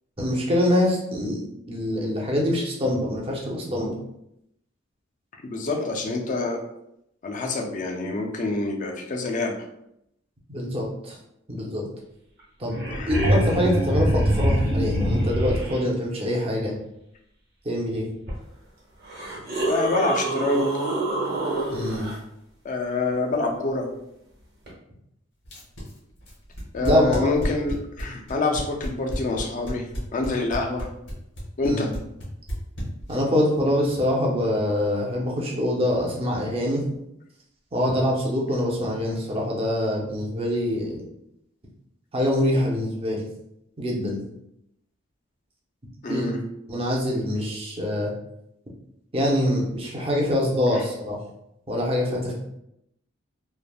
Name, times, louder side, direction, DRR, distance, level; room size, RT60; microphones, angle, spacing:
voice 1, 0.2-1.4 1.7-4.0 10.5-11.2 11.5-11.8 12.6-16.7 17.6-18.0 21.7-22.1 26.8-27.3 31.6-31.9 33.1-36.8 37.7-41.0 42.1-43.2 43.8-44.2 46.1-46.3 46.7-48.1 49.1-51.2 51.7-52.3, left 1 dB, 30° right, -2 dB, 0.6 m, -24 dB
voice 2, 5.4-6.6 7.2-9.6 12.9-13.1 19.7-20.7 22.6-23.9 26.7-29.9 30.1-30.9 31.6-31.9 46.0-46.4, left 3 dB, 40° left, 1 dB, 0.4 m, -26 dB
sound 1, 12.4-12.5 12.6-15.8 18.3-18.4 19.0-22.1 24.7-24.8, right 1 dB, 55° right, 0.9 m, -24 dB
sound 2, 25.4-33.4, equal, 65° left, 1.1 m, -31 dB
3.2 x 2.0 x 2.2 m, 0.79 s
head